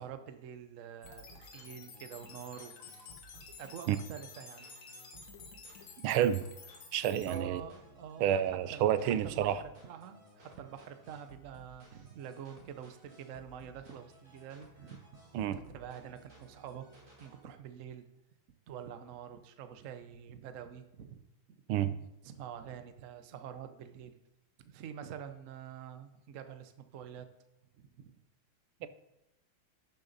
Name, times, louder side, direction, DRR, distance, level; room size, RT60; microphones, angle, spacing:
voice 1, 0.0-2.8 3.6-4.6 7.3-8.8 9.2-15.2 15.5-16.9 17.2-18.1 18.7-21.2 21.5-21.6 22.2-24.2 24.6-27.3 27.8-28.1 28.8-28.9, right 8 dB, 60° right, 9 dB, 0.9 m, -46 dB
sound 1, 1.0-7.4, left 5 dB, 65° left, 2.0 m, -52 dB
sound 2, 1.0-17.4, right 1 dB, 25° right, 2.4 m, -58 dB
voice 2, 6.0-6.4 6.9-7.6 8.2-9.6 15.3-15.6 21.7-22.0 28.8-28.9, right 10 dB, 90° right, 13 dB, 1.5 m, -29 dB
11.5 x 6.9 x 4.0 m, 0.90 s
omnidirectional pair, 2.3 m